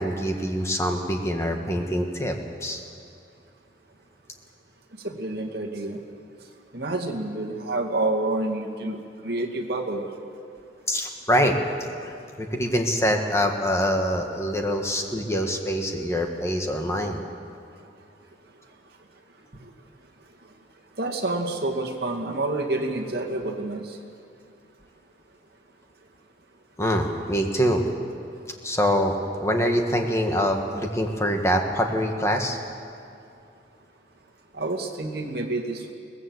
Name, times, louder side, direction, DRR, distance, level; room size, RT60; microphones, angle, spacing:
voice 1, 0.0-2.3 2.6-2.8 10.9-11.5 11.9-12.1 12.4-17.2 26.8-27.8 28.6-29.1 29.4-32.6, equal, 15° left, 3 dB, 1.6 m, -24 dB
voice 2, 5.0-6.0 6.7-9.0 9.2-10.0 21.0-24.0 34.5-35.9, right 2 dB, 55° right, 1 dB, 2.3 m, -28 dB
22.5 x 18.5 x 8.0 m, 2.5 s
head